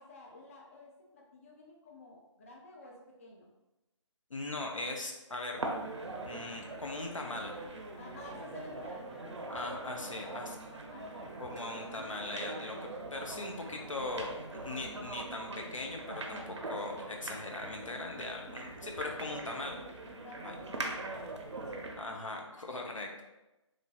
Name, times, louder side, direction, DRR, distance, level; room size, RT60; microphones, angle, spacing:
voice 1, 0.0-3.5 8.0-9.8 10.1-11.5 20.1-21.8, left 2 dB, 25° left, -1 dB, 0.3 m, -52 dB
voice 2, 4.3-5.7 6.2-7.6 9.5-10.6 11.4-19.8 20.4-20.5 21.9-23.2, left 2 dB, 85° left, 1 dB, 0.6 m, -40 dB
sound 1, 5.6-22.1, right 2 dB, 65° right, 0.5 m, -42 dB
3.1 x 2.5 x 2.2 m, 1.0 s
figure-of-eight pair, 145°, 16 cm